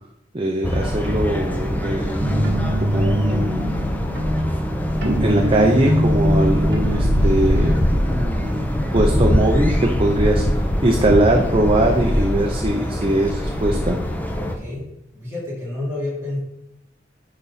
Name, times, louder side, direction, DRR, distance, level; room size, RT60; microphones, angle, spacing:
voice 1, 0.3-4.0 4.5-4.6 5.0-10.4 10.8-14.0, right 1 dB, 30° right, 2 dB, 0.7 m, -21 dB
sound 1, 0.6-14.6, equal, 10° left, 0.6 m, -22 dB
sound 2, 2.2-7.7, equal, 60° right, 1.8 m, -23 dB
voice 2, 14.3-14.9 15.1-16.4, left 2 dB, 15° right, -8 dB, 3.2 m, -30 dB
10.5 x 4.0 x 4.2 m, 0.81 s
head